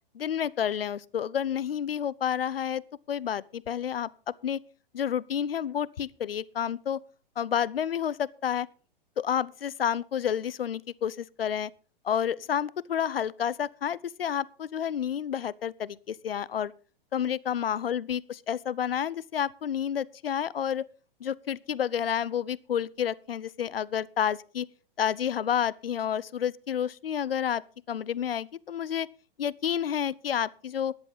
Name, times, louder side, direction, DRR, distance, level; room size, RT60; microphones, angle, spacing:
voice 1, 0.1-2.8 3.1-4.1 4.4-4.6 4.9-7.0 7.4-8.7 9.2-11.7 12.0-16.7 17.1-20.9 21.2-24.7 25.0-27.6 27.9-29.1 29.4-31.0, left 9 dB, 75° left, 0.7 m, -30 dB
13.5 x 9.9 x 5.5 m
figure-of-eight pair, 110°, 29 cm